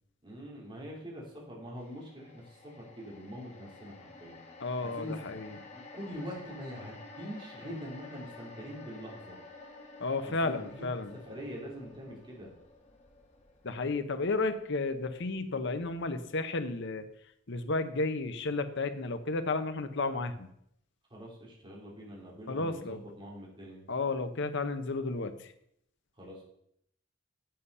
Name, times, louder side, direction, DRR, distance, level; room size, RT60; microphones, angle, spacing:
voice 1, 0.2-4.4 4.8-5.2 5.7-9.4 10.2-10.8 11.2-12.5 21.1-23.8 26.2-26.4, equal, 25° right, -3 dB, 3.3 m, -44 dB
sound 1, 1.8-16.1 16.5-16.6, left 3 dB, 35° left, 1.5 m, -52 dB
voice 2, 4.6-5.6 10.0-11.2 13.6-17.0 17.5-20.5 22.5-23.0 23.9-25.5, left 3 dB, 65° left, 10 dB, 0.9 m, -32 dB
8.2 x 7.7 x 5.5 m, 0.73 s
head